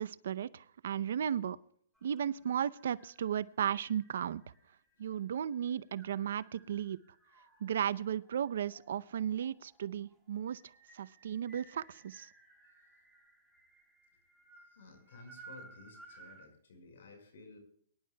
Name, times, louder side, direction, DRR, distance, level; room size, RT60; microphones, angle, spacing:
voice 1, 0.0-1.6 2.0-4.4 5.0-7.0 7.6-10.6 10.9-12.3, right 9 dB, 65° right, 17 dB, 0.6 m, -35 dB
sound 1, 1.9-16.5, right 3 dB, ahead, 1.7 m, -60 dB
voice 2, 14.7-17.6, left 3 dB, 75° left, 5 dB, 5.2 m, -56 dB
23.5 x 11.0 x 2.3 m, 0.65 s
hypercardioid pair, 155°, 0 cm